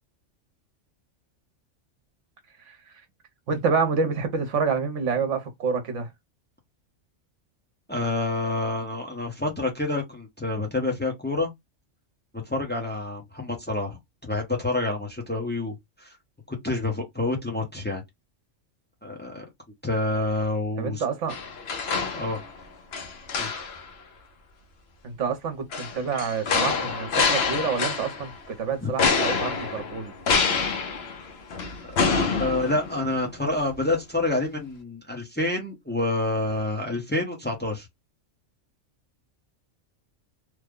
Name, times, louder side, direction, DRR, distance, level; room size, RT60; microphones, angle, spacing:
voice 1, 3.5-6.1 20.8-21.4 25.0-30.1, right 5 dB, 70° right, 1.1 m, -28 dB
voice 2, 7.9-11.5 12.5-16.1 16.5-18.0 19.0-19.4 19.8-21.0 22.1-22.4 23.3-23.5 28.8-28.9 31.8-37.9, left 2 dB, 10° left, 0.8 m, -28 dB
sound 1, 21.3-22.6 22.9-23.9 25.7-28.4 29.0-33.3 33.7-33.8, left 5 dB, 60° left, 1.0 m, -26 dB
3.2 x 2.1 x 3.6 m
omnidirectional pair, 1.3 m